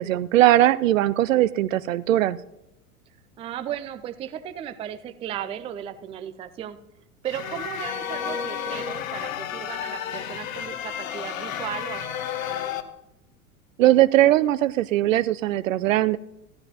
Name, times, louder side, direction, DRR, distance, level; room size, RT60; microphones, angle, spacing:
voice 1, 0.0-2.4 13.8-16.2, right 14 dB, 60° right, 17 dB, 0.6 m, -20 dB
voice 2, 3.4-6.8 7.2-12.1, right 10 dB, 15° right, 11 dB, 0.4 m, -35 dB
sound 1, 7.2-12.8, left 8 dB, 65° left, 1.2 m, -32 dB
16.0 x 12.5 x 2.9 m, 0.89 s
figure-of-eight pair, 90°, 44 cm